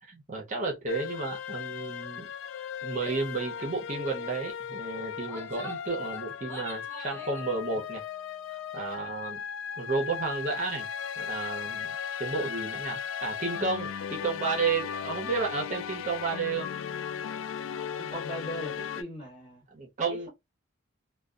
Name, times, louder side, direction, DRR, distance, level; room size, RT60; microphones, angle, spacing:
voice 1, 0.0-2.3 2.8-8.0 8.7-9.4 9.8-10.9 11.2-16.7 19.7-20.3, right 4 dB, 40° right, 0.6 m, -32 dB
sound 1, 0.9-19.0, left 8 dB, 80° left, 0.3 m, -37 dB
Female speech woman speaking / Yell, 3.0-3.3 3.6-3.7 4.0-4.3 5.0-7.5, left 1 dB, 10° left, 0.8 m, -44 dB
voice 2, 18.0-19.6 20.1-20.3, right 1 dB, 30° left, 1.5 m, -39 dB
2.5 x 2.2 x 2.3 m
head